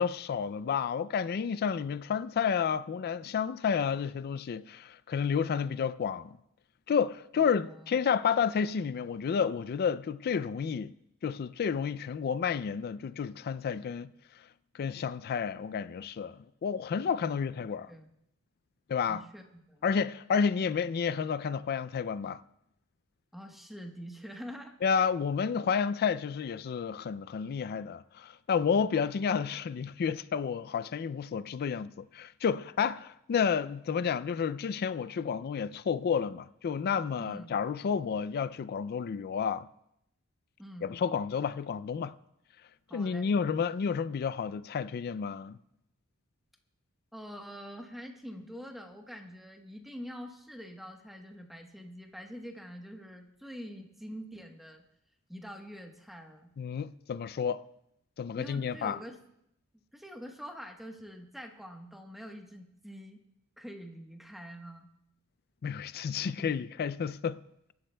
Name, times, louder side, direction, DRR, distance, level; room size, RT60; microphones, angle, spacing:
voice 1, 0.0-6.4 6.9-10.9 11.2-14.1 14.7-17.9 18.9-19.2 19.8-22.4 24.8-39.7 40.8-42.1 42.9-45.6 56.6-57.6 58.2-59.0 65.6-67.4, left 6 dB, 45° left, 0.3 m, -30 dB
voice 2, 7.4-7.9 17.3-18.1 19.1-19.8 23.3-24.8 37.2-37.5 40.6-40.9 42.9-43.3 47.1-54.8 55.3-56.5 58.3-59.2 59.9-63.2 63.6-64.9 66.2-66.5, equal, ahead, 1.1 m, -45 dB
22.0 x 11.5 x 2.3 m
head